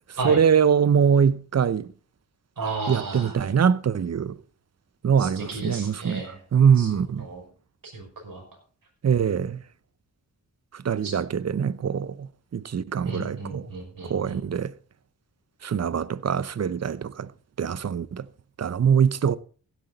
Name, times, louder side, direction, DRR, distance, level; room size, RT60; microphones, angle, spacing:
voice 1, 0.2-1.9 2.9-4.4 5.0-7.3 9.0-9.6 10.7-13.7 14.0-14.7 15.6-17.3 17.6-18.2 18.6-19.4, right 7 dB, 40° right, 0.7 m, -23 dB
voice 2, 2.6-3.3 5.2-6.4 6.8-6.9 7.2-7.4 7.8-8.4 11.0-11.1 13.0-14.4, right 3 dB, 60° right, 5.7 m, -33 dB
16.0 x 8.0 x 4.0 m
supercardioid pair, 45°, 39 cm